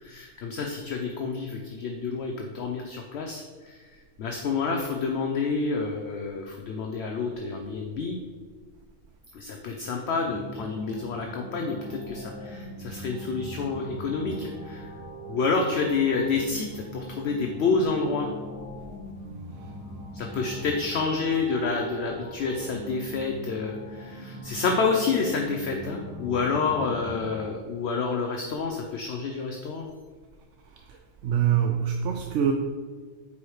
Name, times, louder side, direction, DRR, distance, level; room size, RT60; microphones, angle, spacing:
voice 1, 0.0-8.2 9.3-14.9 15.3-18.3 20.1-29.9, left 4 dB, 60° left, 2 dB, 0.8 m, -29 dB
sound 1, 10.2-27.5, right 1 dB, 35° left, 1.9 m, -40 dB
voice 2, 31.2-32.5, right 9 dB, 70° right, 3 dB, 0.9 m, -24 dB
8.3 x 4.8 x 3.2 m, 1.5 s
omnidirectional pair, 1.4 m